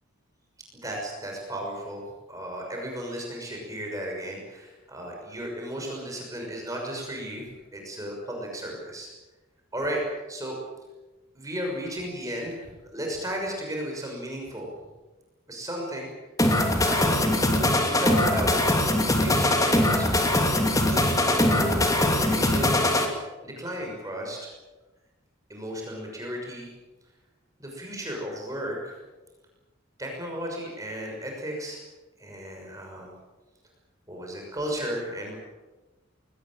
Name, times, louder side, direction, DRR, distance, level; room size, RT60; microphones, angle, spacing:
voice 1, 0.8-2.0 2.3-7.4 7.7-9.1 9.7-10.6 11.3-14.7 15.5-16.1 16.9-18.6 19.0-20.3 20.8-22.8 23.4-24.5 25.5-26.7 27.6-28.9 30.0-31.8 32.2-33.1 34.1-35.4, equal, 15° right, 0 dB, 6.3 m, -34 dB
sound 1, 16.4-23.0, left 1 dB, 15° left, 2.8 m, -22 dB
22.0 x 19.5 x 9.0 m, 1.1 s
head